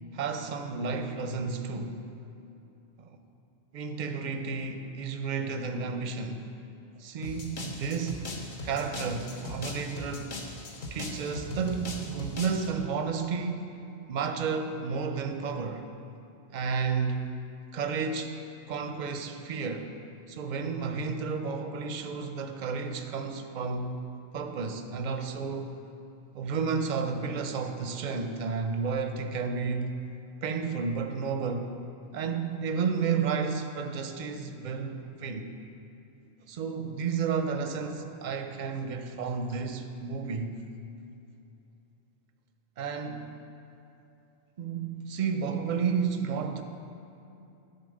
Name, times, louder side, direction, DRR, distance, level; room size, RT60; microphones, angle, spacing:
voice 1, 0.1-2.0 3.0-3.2 3.7-6.5 7.0-8.3 8.6-10.3 10.9-13.7 14.1-15.9 16.5-17.2 17.7-18.4 18.7-19.9 20.3-24.0 24.3-25.7 26.3-29.9 30.4-31.7 32.1-35.5 36.5-40.6 42.8-43.3 44.6-46.6, right 5 dB, 50° right, 7 dB, 0.6 m, -32 dB
sound 1, 7.2-12.7, left 2 dB, 50° left, 1.0 m, -39 dB
10.5 x 4.2 x 6.4 m, 2.8 s
omnidirectional pair, 1.1 m